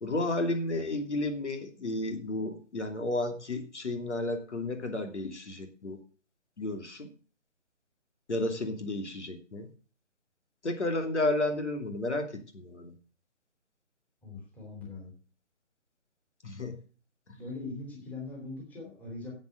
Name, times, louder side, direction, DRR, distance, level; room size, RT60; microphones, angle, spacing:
voice 1, 0.0-6.0 6.6-7.1 8.3-9.7 10.6-12.9 16.4-16.8, left 2 dB, 60° left, 6 dB, 2.8 m, -32 dB
voice 2, 14.2-15.1 17.4-19.3, left 3 dB, 5° left, -2 dB, 2.7 m, -41 dB
10.5 x 7.9 x 7.9 m, 0.39 s
figure-of-eight pair, 150°, 38 cm